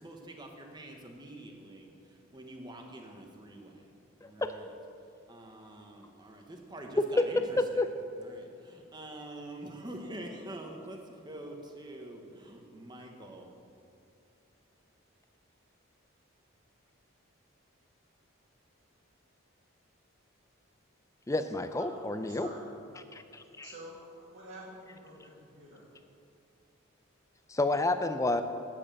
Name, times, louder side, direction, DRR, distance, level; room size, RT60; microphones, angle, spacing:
voice 1, 0.0-3.8 4.2-4.7 5.3-7.8 8.2-13.5, right 1 dB, 20° right, 2 dB, 1.1 m, -46 dB
voice 2, 4.2-4.5 7.2-7.3 7.8-7.9 21.3-22.5 23.1-23.7 27.5-28.4, left 2 dB, 15° left, 9 dB, 0.5 m, -30 dB
voice 3, 21.8-22.7 23.6-25.9, right 1 dB, 60° right, -7 dB, 2.3 m, -49 dB
9.6 x 7.6 x 6.6 m, 2.5 s
head